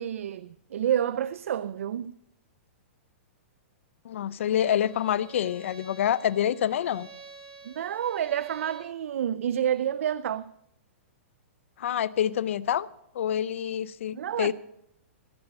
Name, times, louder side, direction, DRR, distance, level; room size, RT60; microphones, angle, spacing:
voice 1, 0.0-2.2 7.6-10.5 14.1-14.5, right 10 dB, 85° right, 0.3 m, -29 dB
voice 2, 4.0-7.1 11.8-12.9 13.1-14.5, left 10 dB, 70° left, 0.5 m, -27 dB
Bowed string instrument, 4.4-8.9, right 4 dB, 25° right, 2.0 m, -49 dB
15.0 x 5.3 x 7.9 m
hypercardioid pair, 165°, 7 cm